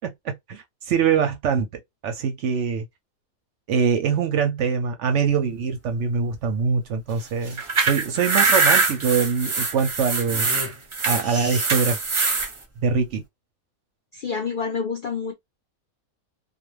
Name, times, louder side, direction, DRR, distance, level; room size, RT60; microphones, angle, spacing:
voice 1, 0.0-1.7 2.0-2.8 3.7-10.5 11.1-12.0 12.8-13.2, right 6 dB, 65° right, 0.8 m, -23 dB
sound 1, 5.2-13.2, equal, 15° right, 0.6 m, -39 dB
sound 2, 7.5-12.5, right 4 dB, 50° right, 0.3 m, -22 dB
voice 2, 14.1-15.3, left 5 dB, 65° left, 0.5 m, -28 dB
2.4 x 2.2 x 3.0 m
omnidirectional pair, 1.5 m